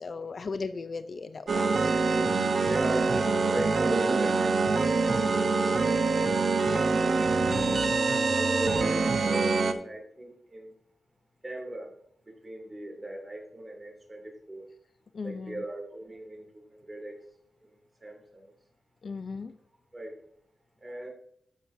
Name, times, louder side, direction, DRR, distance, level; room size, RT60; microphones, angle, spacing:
voice 1, 0.0-1.8 7.5-8.1 15.1-15.6 19.0-19.5, left 4 dB, 55° left, 12 dB, 0.5 m, -37 dB
sound 1, 1.5-9.7, right 4 dB, 60° right, 0.9 m, -25 dB
voice 2, 2.1-7.2 7.9-10.7 11.4-11.9 12.3-14.7 15.2-17.2 17.6-18.5 19.9-20.2 20.8-21.1, right 1 dB, 25° right, 1 dB, 2.7 m, -39 dB
13.0 x 6.4 x 2.7 m, 0.69 s
cardioid pair, 70°, 0 cm